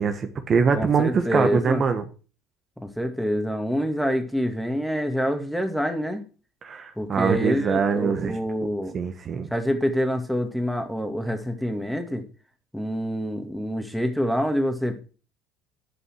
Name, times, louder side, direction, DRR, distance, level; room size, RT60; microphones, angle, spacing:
voice 1, 0.0-2.0 6.6-8.4 8.9-9.5, right 6 dB, 40° right, 1.3 m, -23 dB
voice 2, 0.7-1.8 2.8-6.2 7.0-9.0 9.5-12.2 12.7-15.0, equal, ahead, 2.3 m, -26 dB
10.5 x 5.5 x 6.4 m
hypercardioid pair, 80°, 0 cm